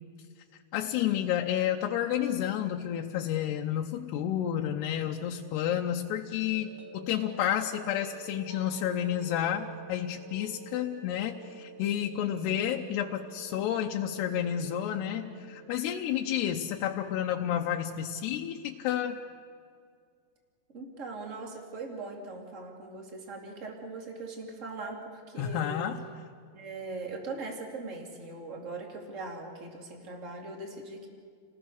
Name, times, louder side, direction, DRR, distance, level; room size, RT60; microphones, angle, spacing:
voice 1, 0.7-19.2 25.4-26.0, left 10 dB, 85° left, 2 dB, 2.9 m, -30 dB
sound 1, 6.5-15.6, right 3 dB, 65° right, 1.4 m, -48 dB
voice 2, 20.7-25.9 26.5-31.1, right 3 dB, 20° right, 2 dB, 2.4 m, -40 dB
29.5 x 19.5 x 6.6 m, 2.2 s
omnidirectional pair, 4.8 m